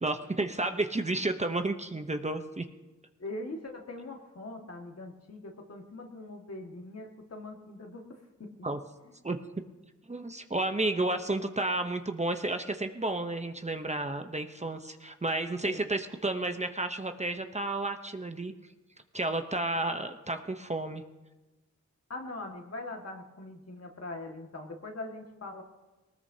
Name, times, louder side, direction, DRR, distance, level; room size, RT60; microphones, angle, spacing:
voice 1, 0.0-2.6 8.6-8.8 9.2-9.4 10.1-18.5 19.1-21.0, right 2 dB, 25° right, 6 dB, 0.8 m, -31 dB
voice 2, 3.2-8.7 9.0-9.1 15.6-15.9 22.1-25.6, left 2 dB, 55° left, 2 dB, 1.9 m, -42 dB
20.5 x 19.0 x 2.8 m, 1.1 s
wide cardioid pair, 80°, 29 cm